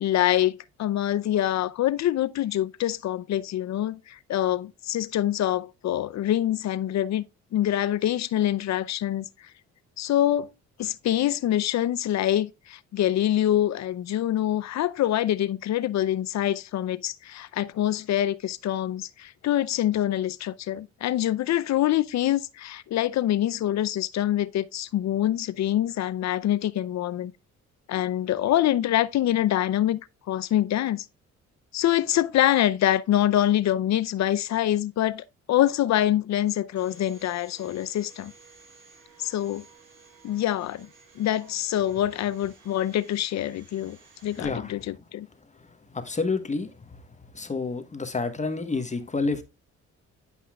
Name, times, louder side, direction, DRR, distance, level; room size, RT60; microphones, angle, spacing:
voice 1, 0.0-7.2 7.5-9.3 10.0-10.5 10.8-27.3 27.9-30.0 30.3-31.1 31.7-38.3 39.2-39.6 40.2-40.9 41.2-44.0 44.2-45.3, left 12 dB, 65° left, 0.6 m, -25 dB
Domestic sounds home sounds, 36.8-44.5, right 4 dB, 85° right, 3.3 m, -54 dB
voice 2, 44.4-44.7 45.5-47.0 47.3-49.4, left 3 dB, 25° left, 1.2 m, -29 dB
10.5 x 5.5 x 2.3 m
cardioid pair, 90°, 30 cm